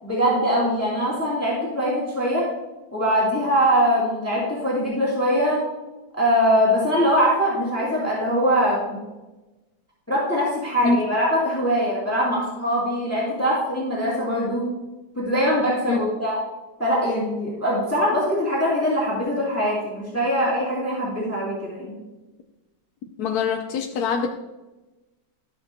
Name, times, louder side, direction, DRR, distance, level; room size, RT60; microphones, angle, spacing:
voice 1, 0.0-2.5 2.9-5.6 6.1-9.0 10.1-14.7 15.2-16.4 16.8-22.0, equal, 10° left, -7 dB, 2.3 m, -22 dB
voice 2, 23.2-24.3, left 4 dB, 70° left, 4 dB, 1.1 m, -24 dB
13.5 x 6.7 x 2.7 m, 1.1 s
omnidirectional pair, 1.8 m